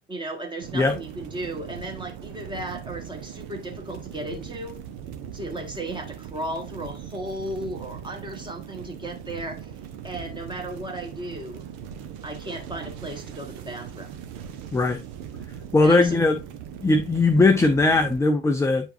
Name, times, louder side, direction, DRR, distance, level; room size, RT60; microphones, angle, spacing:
voice 1, 0.1-4.8 5.3-9.7 10.0-11.7 12.2-14.2 15.8-16.2, right 1 dB, 15° right, 1.7 m, -35 dB
sound 1, 0.6-18.2, right 8 dB, 55° right, 1.0 m, -40 dB
voice 2, 15.7-16.4 16.8-18.9, left 3 dB, 10° left, 0.6 m, -19 dB
8.9 x 4.5 x 2.6 m
figure-of-eight pair, 60°, 34 cm